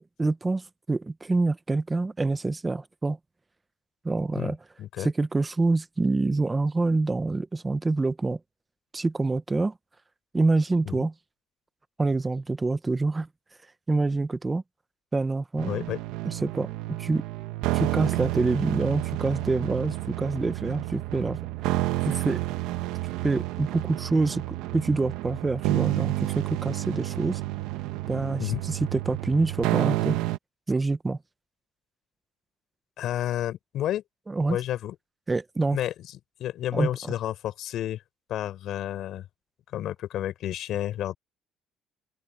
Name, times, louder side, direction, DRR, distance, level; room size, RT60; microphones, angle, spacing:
voice 1, 0.0-3.2 4.0-4.6 5.0-8.4 8.9-9.7 10.3-11.1 12.0-13.3 13.9-14.6 15.1-15.9 16.3-17.2 17.7-21.4 22.0-22.4 23.2-27.4 28.1-30.2 30.7-31.2 34.3-34.6 35.3-35.8 36.7-36.9, right 3 dB, 15° right, 0.9 m, -26 dB
voice 2, 4.8-5.1 10.8-11.1 15.7-16.0 28.4-28.6 33.0-34.0 34.5-35.0 35.7-35.9 36.4-38.0 38.3-39.3 39.7-41.2, left 12 dB, 65° left, 5.6 m, -30 dB
sound 1, 15.6-30.4, right 17 dB, 90° right, 1.4 m, -30 dB
open air
cardioid pair, 115°, 0 cm